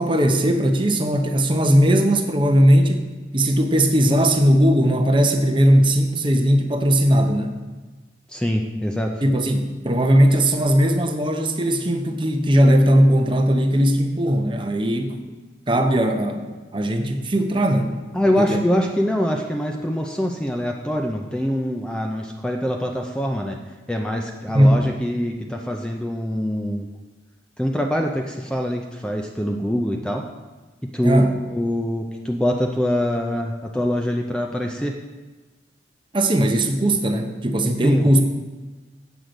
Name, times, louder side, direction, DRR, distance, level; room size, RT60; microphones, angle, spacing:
voice 1, 0.0-3.1 3.3-7.6 9.2-15.2 15.7-17.9 18.4-18.6 24.5-24.8 31.0-31.3 36.1-38.2, equal, 25° right, 5 dB, 0.7 m, -18 dB
voice 2, 8.3-9.2 18.1-23.6 23.9-26.9 27.6-30.2 30.9-35.0 37.8-38.2, equal, 5° left, 1 dB, 0.5 m, -24 dB
8.1 x 7.6 x 5.1 m, 1.2 s
head